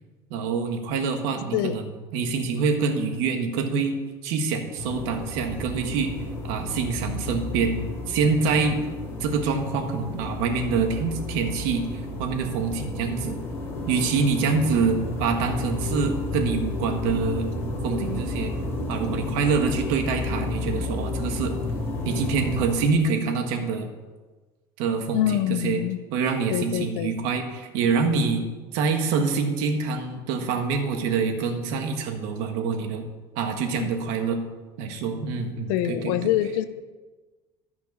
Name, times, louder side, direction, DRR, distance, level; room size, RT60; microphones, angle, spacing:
voice 1, 0.3-1.9 2.1-4.0 4.2-6.1 6.4-8.8 9.2-11.8 12.2-13.4 13.9-17.5 17.8-18.5 18.9-21.5 22.0-23.9 24.8-25.8 26.1-28.4 28.7-33.0 33.3-34.4 34.8-36.1, right 5 dB, 80° right, 5 dB, 1.5 m, -25 dB
sound 1, 4.8-22.8, left 2 dB, 25° left, 2.1 m, -31 dB
voice 2, 25.1-26.0 26.5-27.2 33.8-33.9 35.7-36.6, left 13 dB, 85° left, 12 dB, 0.7 m, -25 dB
13.0 x 5.8 x 5.4 m, 1.3 s
cardioid pair, 150°, 10 cm